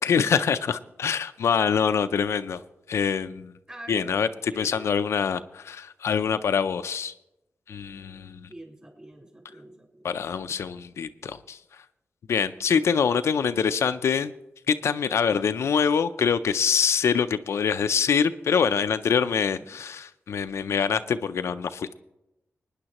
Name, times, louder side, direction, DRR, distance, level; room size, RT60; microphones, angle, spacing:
voice 1, 0.0-2.6 2.9-3.5 3.9-7.1 7.7-8.5 10.0-11.6 12.3-14.3 14.7-21.9, left 6 dB, 80° left, 10 dB, 0.4 m, -25 dB
voice 2, 3.7-4.1 4.5-4.9 8.5-10.4 15.3-15.5 19.6-19.7, right 1 dB, 25° right, 0 dB, 3.4 m, -45 dB
26.0 x 9.8 x 3.0 m, 0.93 s
wide cardioid pair, 105°, 5 cm